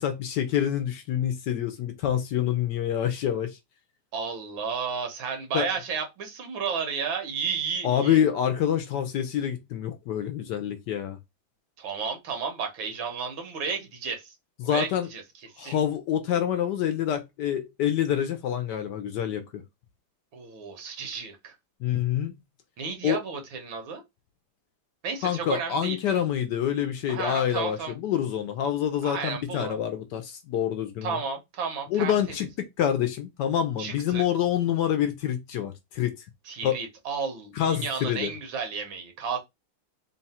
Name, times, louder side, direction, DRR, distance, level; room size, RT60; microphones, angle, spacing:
voice 1, 0.0-3.6 5.5-5.7 7.8-11.2 14.6-15.1 15.6-19.6 21.8-22.3 23.0-23.2 25.2-31.2 31.9-36.2 36.6-36.8 37.6-38.3, left 10 dB, 70° left, 1.1 m, -27 dB
voice 2, 4.1-8.2 11.8-14.3 14.7-15.2 15.6-15.8 20.3-21.5 22.8-24.0 25.0-26.0 27.1-27.9 29.0-29.8 31.0-32.4 33.8-34.2 36.5-39.4, right 5 dB, 80° right, 1.8 m, -32 dB
3.8 x 2.3 x 4.1 m
omnidirectional pair, 2.1 m